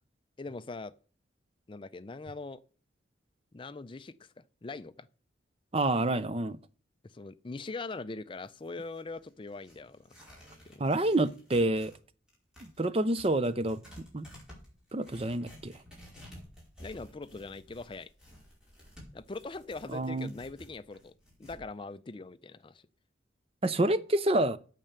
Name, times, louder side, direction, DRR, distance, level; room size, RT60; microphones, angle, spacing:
voice 1, 0.4-0.9 1.7-2.6 3.5-5.1 7.0-10.2 10.6-10.9 16.8-18.1 19.1-21.1 21.4-22.9, left 3 dB, 25° left, 0.4 m, -42 dB
voice 2, 5.7-6.6 10.8-11.9 12.6-14.3 14.9-15.8 19.9-20.3 23.6-24.6, right 1 dB, 30° right, 0.6 m, -28 dB
Tearing, 8.3-12.0 12.3-21.6, equal, 5° right, 4.9 m, -53 dB
9.0 x 7.5 x 6.7 m
head